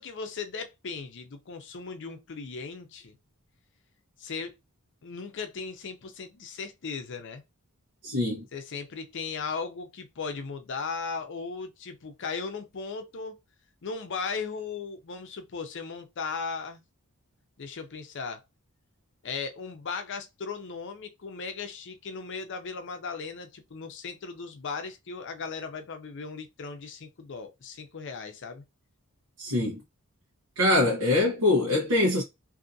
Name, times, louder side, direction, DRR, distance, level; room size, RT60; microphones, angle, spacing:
voice 1, 0.0-3.1 4.2-4.6 5.0-7.4 8.5-13.4 13.8-16.8 17.6-18.4 19.2-28.6, left 5 dB, 55° left, 0.5 m, -37 dB
voice 2, 8.0-8.4 29.4-29.8 30.6-32.2, left 2 dB, 90° right, 0.9 m, -23 dB
2.6 x 2.5 x 2.6 m
head